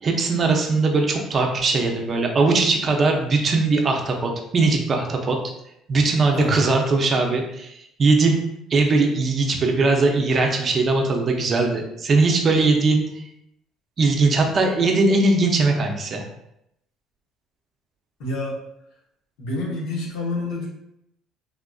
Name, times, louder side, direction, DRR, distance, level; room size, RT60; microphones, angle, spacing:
voice 1, 0.0-5.4 5.9-8.4 8.7-13.2 14.0-16.2, right 3 dB, 35° right, 2 dB, 0.5 m, -20 dB
voice 2, 18.2-18.5 19.4-20.7, left 2 dB, 80° left, -2 dB, 0.9 m, -27 dB
3.5 x 2.4 x 2.3 m, 0.79 s
cardioid pair, 130°, 0 cm